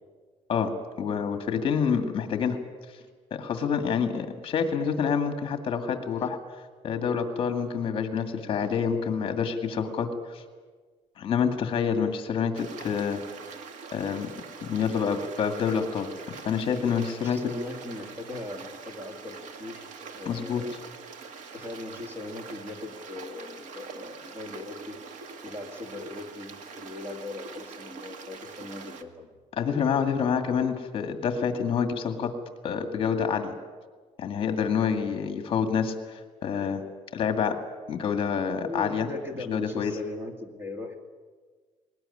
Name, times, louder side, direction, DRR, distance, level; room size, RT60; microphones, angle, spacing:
voice 1, 1.0-2.6 3.3-6.4 6.8-10.4 11.2-13.2 13.9-14.3 14.6-17.5 20.3-20.6 29.5-32.3 32.6-33.5 34.2-36.8 37.1-37.6 37.9-39.1 39.5-39.9, left 6 dB, 45° left, 6 dB, 2.1 m, -27 dB
Stream, 12.5-29.0, right 5 dB, 70° right, 1.8 m, -44 dB
voice 2, 17.2-19.9 20.2-20.7 21.5-25.0 25.4-29.3 38.6-41.0, left 2 dB, 15° right, 4 dB, 2.5 m, -39 dB
20.5 x 19.5 x 9.9 m, 1.4 s
cardioid pair, 170°, 13 cm